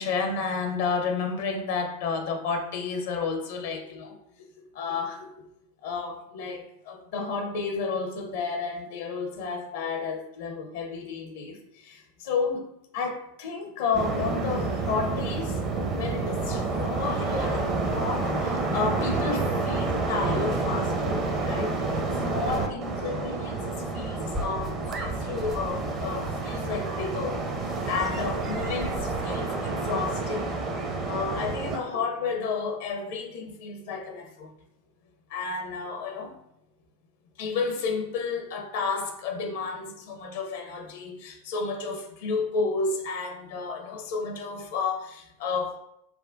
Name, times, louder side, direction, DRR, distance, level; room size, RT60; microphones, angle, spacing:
voice 1, 0.0-4.2 4.7-5.3 5.8-15.6 16.0-21.8 22.2-30.5 31.1-34.5 35.3-36.4 37.4-45.8, left 4 dB, 55° left, 0.6 m, -31 dB
sound 1, 13.9-31.8, right 3 dB, 30° right, 0.6 m, -29 dB
5.8 x 2.2 x 2.5 m
figure-of-eight pair, 90°, 0 cm